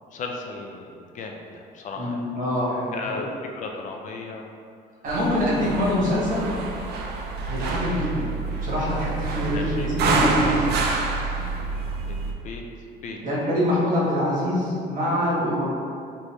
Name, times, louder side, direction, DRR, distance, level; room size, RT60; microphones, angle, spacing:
voice 1, 0.1-2.1 2.9-3.3 3.6-4.5 5.4-5.8 7.4-7.6 9.5-9.9 12.1-12.6 13.0-13.2, left 4 dB, 50° left, 2 dB, 0.4 m, -36 dB
voice 2, 1.9-3.2 5.0-6.6 7.4-8.3 8.6-10.7 13.2-15.7, left 1 dB, 50° right, -6 dB, 1.2 m, -24 dB
sound 1, 5.1-12.3, right 3 dB, 75° right, 0.4 m, -27 dB
3.4 x 2.6 x 3.0 m, 2.3 s
cardioid pair, 110°, 17 cm